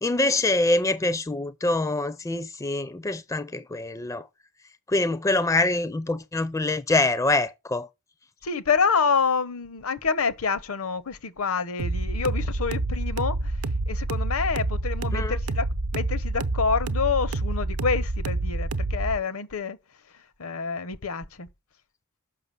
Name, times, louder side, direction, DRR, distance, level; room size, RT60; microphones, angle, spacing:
voice 1, 0.0-4.2 4.9-7.9 15.1-15.4, left 2 dB, 15° left, 0.4 m, -25 dB
voice 2, 8.4-13.5 13.9-15.7 15.9-19.8 20.4-21.5, left 5 dB, 65° left, 0.8 m, -27 dB
sound 1, 11.8-19.2, right 2 dB, 75° right, 0.8 m, -28 dB
6.8 x 5.7 x 6.8 m
head